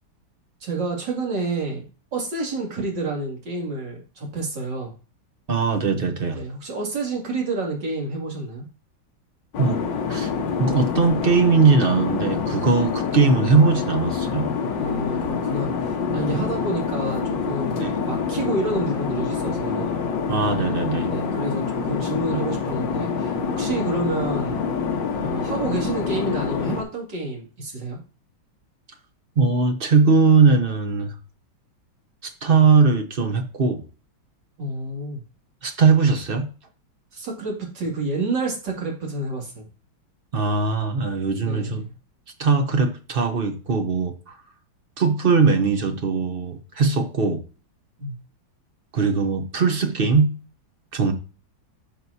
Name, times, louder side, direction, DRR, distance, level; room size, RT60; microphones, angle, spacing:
voice 1, 0.6-1.8 2.1-4.9 6.3-8.7 14.8-20.0 21.1-24.6 25.2-28.0 34.6-35.2 37.1-39.7 41.4-41.9 48.0-48.2, right 2 dB, 60° right, -1 dB, 3.1 m, -29 dB
voice 2, 5.5-6.4 9.6-9.8 10.1-10.3 10.6-14.5 16.3-16.4 17.8-17.9 20.3-21.1 29.4-31.1 32.2-33.8 35.6-36.5 40.3-41.8 42.4-44.4 45.0-47.4 48.9-50.3 50.9-51.1, right 4 dB, 45° right, 6 dB, 0.7 m, -20 dB
sound 1, 9.5-26.8, left 5 dB, 65° left, 2.0 m, -26 dB
10.0 x 6.2 x 2.7 m, 0.35 s
omnidirectional pair, 2.2 m